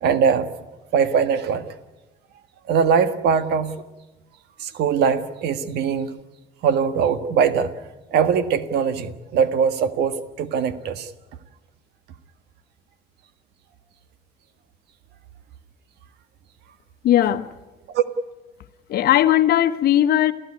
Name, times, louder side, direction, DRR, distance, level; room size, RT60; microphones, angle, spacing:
voice 1, 0.0-0.5 0.9-1.6 2.7-3.8 4.6-6.1 6.6-7.7 8.1-11.1 17.9-18.0, right 6 dB, 80° right, 1.6 m, -21 dB
voice 2, 17.0-17.5 18.9-20.3, left 12 dB, 65° left, 1.2 m, -18 dB
29.5 x 14.5 x 9.7 m
cardioid pair, 110°, 17 cm